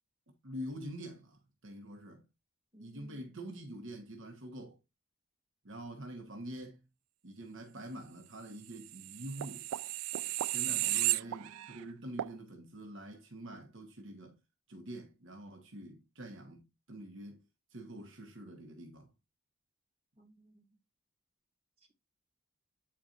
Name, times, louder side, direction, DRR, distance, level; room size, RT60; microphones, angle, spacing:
voice 1, 0.3-2.2 2.8-4.8 5.6-6.8 7.2-9.7 10.5-14.3 14.7-17.4 17.7-19.1, right 1 dB, 60° right, 1.2 m, -46 dB
voice 2, 2.7-3.4 11.1-11.7 20.2-20.8 21.8-21.9, right 1 dB, 25° right, 1.8 m, -59 dB
sound 1, 8.9-11.8 12.2-12.3, right 16 dB, 85° right, 0.3 m, -34 dB
8.7 x 4.4 x 2.6 m
head